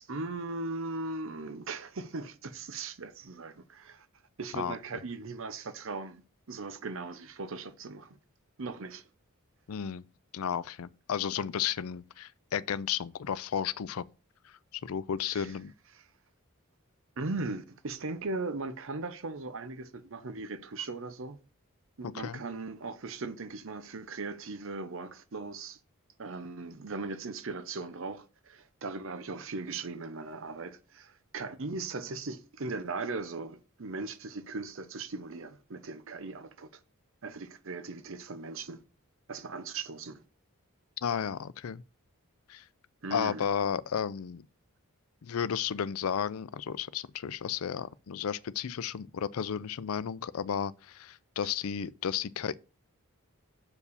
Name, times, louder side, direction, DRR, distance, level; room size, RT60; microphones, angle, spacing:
voice 1, 0.0-4.1 4.4-8.2 8.6-9.0 15.3-15.5 15.9-16.0 17.2-21.4 22.0-25.8 26.2-36.7 37.2-38.8 39.3-40.2 43.0-43.4, right 3 dB, 60° right, 0.7 m, -38 dB
voice 2, 9.7-10.0 10.3-14.0 14.4-15.7 22.0-22.4 41.0-41.8 42.5-42.6 43.1-44.4 45.2-52.5, left 8 dB, 75° left, 0.4 m, -33 dB
6.8 x 4.7 x 6.8 m
head